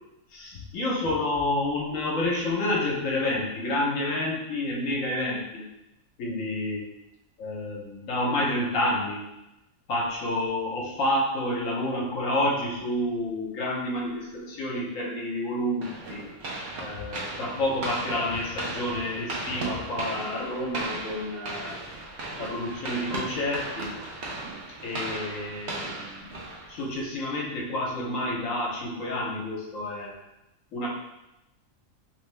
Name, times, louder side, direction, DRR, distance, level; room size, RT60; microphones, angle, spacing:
voice 1, 0.3-5.6 6.2-6.9 7.4-9.3 9.9-16.2 16.8-21.8 22.4-23.9 24.8-30.1 30.7-30.9, left 1 dB, 70° left, -2 dB, 1.1 m, -29 dB
sound 1, 15.8-27.1, right 2 dB, 60° right, 0.9 m, -36 dB
3.0 x 2.6 x 3.2 m, 0.92 s
omnidirectional pair, 1.5 m